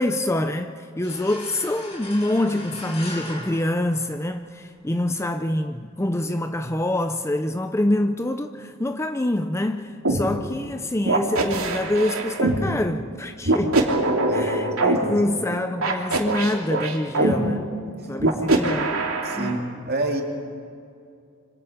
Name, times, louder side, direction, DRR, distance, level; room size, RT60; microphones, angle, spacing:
voice 1, 0.0-13.9 14.3-17.7 18.1-18.9 19.4-19.7, left 1 dB, 15° left, 0.5 m, -26 dB
sound 1, 1.0-4.6, left 1 dB, 30° left, 4.1 m, -39 dB
sound 2, 10.0-10.2 11.1-12.6 13.4-15.0 15.8-17.3 18.2-19.5, right 2 dB, 80° right, 2.9 m, -22 dB
voice 2, 14.2-15.2 18.0-18.1 19.2-20.2, right 2 dB, 45° right, 2.8 m, -29 dB
26.5 x 25.5 x 5.1 m
head